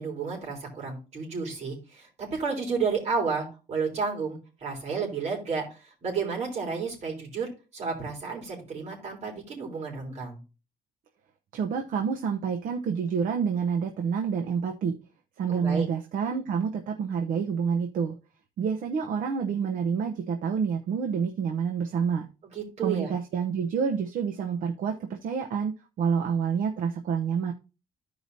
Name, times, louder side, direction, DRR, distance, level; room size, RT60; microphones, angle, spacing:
voice 1, 0.0-10.4 15.5-15.9 22.5-23.1, right 5 dB, 45° right, 0 dB, 3.5 m, -32 dB
voice 2, 11.5-15.0 15.4-18.1 18.6-22.3 22.8-25.7 26.0-27.5, right 6 dB, 60° right, 3 dB, 0.8 m, -28 dB
14.5 x 4.9 x 2.7 m, 0.32 s
cardioid pair, 150°, 16 cm